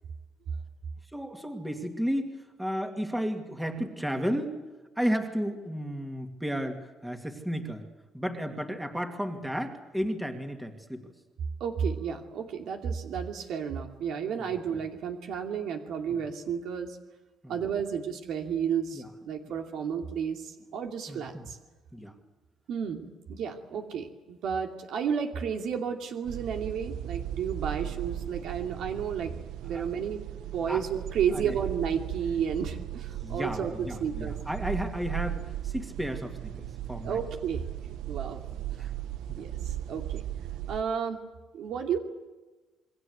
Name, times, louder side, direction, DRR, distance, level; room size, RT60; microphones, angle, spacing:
voice 1, 1.1-4.6 5.0-7.9 8.1-11.1 14.4-14.5 16.1-16.2 17.4-17.6 18.9-19.1 19.4-19.5 21.1-21.5 21.9-22.1 27.8-27.9 29.7-29.8 30.7-30.8 31.3-31.6 33.2-37.2 38.8-38.9 39.3-39.4, equal, 5° right, 4 dB, 2.4 m, -33 dB
voice 2, 11.6-17.0 17.5-21.6 22.7-29.3 29.6-30.2 30.5-34.3 37.0-37.6 38.1-38.4 38.7-38.8 39.4-40.2 40.7-41.2 41.5-42.0, right 7 dB, 65° right, 4 dB, 2.7 m, -32 dB
sound 1, 26.3-40.8, right 12 dB, 85° right, 0.9 m, -37 dB
27.5 x 23.0 x 8.1 m, 1.2 s
cardioid pair, 160°, 0 cm